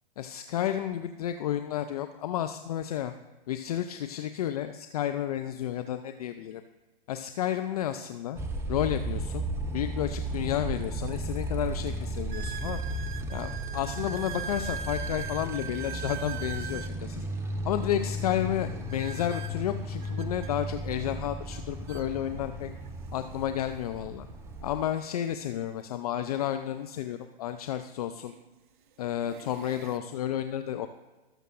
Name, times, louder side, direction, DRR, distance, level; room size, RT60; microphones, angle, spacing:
voice 1, 0.2-3.1 3.5-6.6 7.1-8.4 8.7-9.5 9.7-12.8 13.3-17.3 17.6-22.7 23.1-24.3 24.6-28.3 29.0-30.9, left 11 dB, 40° left, 9 dB, 0.4 m, -31 dB
Motorcycle, 8.4-24.8, right 1 dB, 10° right, 0.5 m, -35 dB
sound 1, 10.6-10.7 11.3-11.4 12.3-17.0 18.9-20.5 21.5-21.6 21.9-22.1 22.9-23.0 25.2-25.3 27.3-27.4 28.2-28.5 29.0-30.0, right 8 dB, 55° right, 0.6 m, -41 dB
18.5 x 6.6 x 2.5 m, 1.2 s
figure-of-eight pair, 110°, 30 cm